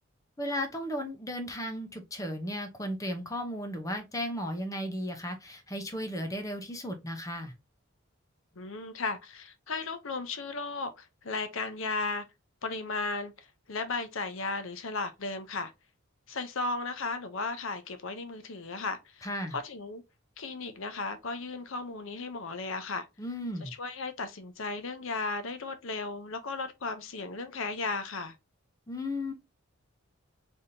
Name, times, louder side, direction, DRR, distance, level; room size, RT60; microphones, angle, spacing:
voice 1, 0.4-7.5 19.2-19.6 23.2-23.7 28.9-29.3, equal, 15° left, 0.8 m, -35 dB
voice 2, 8.6-12.3 12.6-15.7 16.3-20.0 20.4-23.1 23.6-28.3, left 3 dB, 70° left, 0.7 m, -35 dB
4.2 x 3.4 x 2.7 m
head